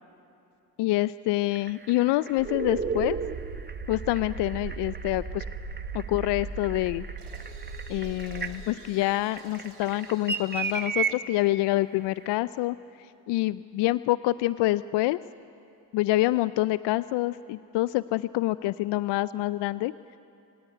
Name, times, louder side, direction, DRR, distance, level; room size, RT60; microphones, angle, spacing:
voice 1, 0.8-3.2 3.9-5.4 5.9-7.0 7.9-12.8 13.3-15.2 15.9-19.9, left 17 dB, 65° left, 16 dB, 0.6 m, -26 dB
sound 1, 1.5-11.1 12.3-12.4, right 5 dB, 20° right, 1.3 m, -34 dB
sound 2, 2.4-8.5, right 5 dB, 60° right, 4.4 m, -38 dB
sound 3, 7.2-10.9, right 3 dB, 85° right, 3.6 m, -51 dB
27.0 x 18.5 x 9.4 m, 2.7 s
hypercardioid pair, 55°, 45 cm